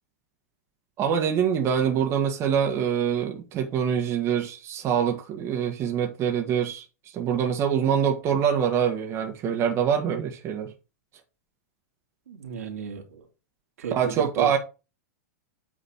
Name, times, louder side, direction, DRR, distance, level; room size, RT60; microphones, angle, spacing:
voice 1, 1.0-6.8 7.1-10.7 13.9-14.6, right 8 dB, 35° right, 1.7 m, -25 dB
voice 2, 12.3-13.2 13.8-14.6, right 7 dB, 80° right, 2.8 m, -34 dB
8.6 x 4.2 x 5.8 m
hypercardioid pair, 115°, 8 cm